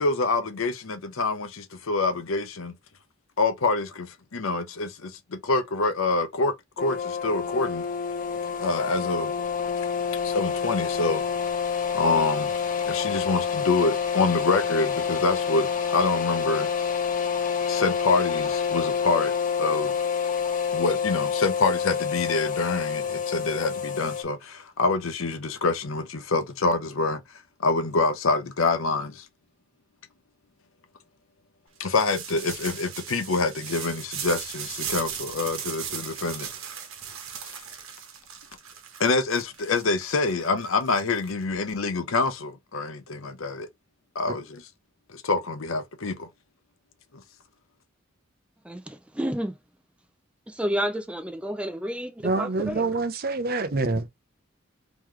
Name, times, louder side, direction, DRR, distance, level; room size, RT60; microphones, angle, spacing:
voice 1, 0.0-2.7 3.4-7.9 8.6-9.3 9.8-9.9 10.2-11.2 11.9-12.6 12.8-16.7 17.7-19.3 19.6-20.0 20.7-27.2 27.6-29.3 31.8-36.5 39.0-43.7 44.1-44.7 45.1-46.3 47.1-47.2, left 3 dB, 80° left, 0.7 m, -26 dB
sound 1, 6.8-24.2, left 6 dB, 40° left, 0.7 m, -28 dB
sound 2, 31.8-41.7, right 8 dB, 80° right, 1.1 m, -37 dB
voice 2, 48.6-49.5 50.5-52.8, equal, 5° right, 0.3 m, -30 dB
voice 3, 52.2-54.2, right 3 dB, 45° right, 0.6 m, -26 dB
3.7 x 3.0 x 3.1 m
head